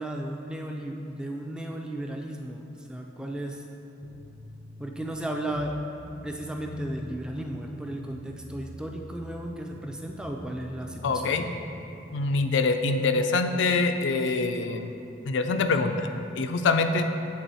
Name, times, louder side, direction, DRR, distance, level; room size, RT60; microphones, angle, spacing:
voice 1, 0.0-3.6 4.8-5.8 6.2-11.4, right 1 dB, 5° right, 1 dB, 0.3 m, -35 dB
sound 1, 4.0-5.1 5.4-7.2 7.5-9.2 9.5-11.9, right 1 dB, 65° right, 0.6 m, -46 dB
voice 2, 11.0-11.4 12.1-14.9 15.2-16.1 16.4-17.0, left 3 dB, 80° left, 7 dB, 0.4 m, -24 dB
7.5 x 3.7 x 4.0 m, 2.7 s
head